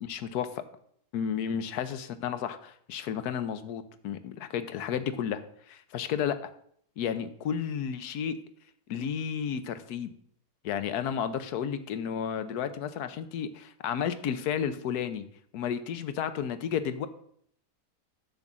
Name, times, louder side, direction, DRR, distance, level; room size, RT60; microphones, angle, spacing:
voice 1, 0.1-0.6 1.1-5.4 5.7-6.5 7.0-8.4 8.9-10.1 10.6-15.2 15.5-17.1, left 8 dB, 75° left, 11 dB, 1.3 m, -32 dB
10.5 x 3.9 x 7.3 m, 0.65 s
omnidirectional pair, 1.7 m